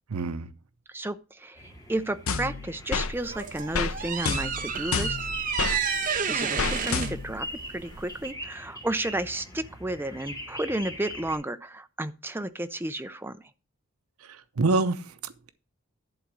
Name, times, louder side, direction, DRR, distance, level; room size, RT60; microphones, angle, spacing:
voice 1, 0.1-0.5 14.3-15.5, right 3 dB, 90° right, 0.7 m, -27 dB
voice 2, 0.9-5.2 6.3-13.4, right 1 dB, 10° right, 0.5 m, -32 dB
sound 1, 1.6-11.3, left 1 dB, 15° left, 2.3 m, -42 dB
sound 2, 2.3-3.1 3.7-3.9 4.2-5.8 6.6-7.4, left 5 dB, 75° left, 0.6 m, -29 dB
sound 3, 3.1-8.3, right 6 dB, 40° right, 0.7 m, -31 dB
11.0 x 3.7 x 7.4 m
head